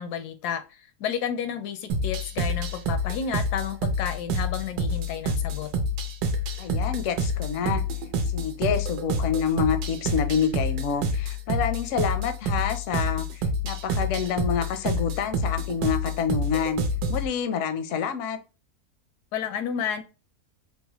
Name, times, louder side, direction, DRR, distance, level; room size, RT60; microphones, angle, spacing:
voice 1, 0.0-5.7 19.3-20.0, left 7 dB, 85° left, 1.1 m, -31 dB
sound 1, 1.9-17.3, equal, 80° right, 1.1 m, -27 dB
voice 2, 6.6-7.8 8.3-16.8 17.1-18.4, left 7 dB, 70° left, 0.8 m, -28 dB
3.9 x 2.1 x 2.9 m
omnidirectional pair, 1.7 m